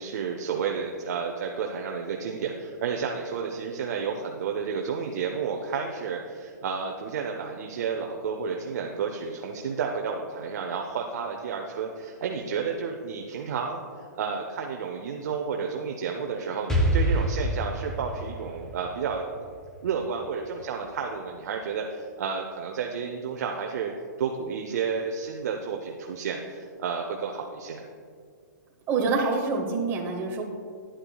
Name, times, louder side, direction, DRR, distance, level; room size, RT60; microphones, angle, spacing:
voice 1, 0.0-19.4 19.8-23.9 24.2-27.9, right 6 dB, 60° right, 2 dB, 0.7 m, -31 dB
Explosion, 16.7-20.5, right 1 dB, 5° left, 0.7 m, -27 dB
voice 2, 28.9-30.4, right 4 dB, 20° right, 1 dB, 0.9 m, -26 dB
9.7 x 8.7 x 2.3 m, 2.2 s
hypercardioid pair, 155°, 10 cm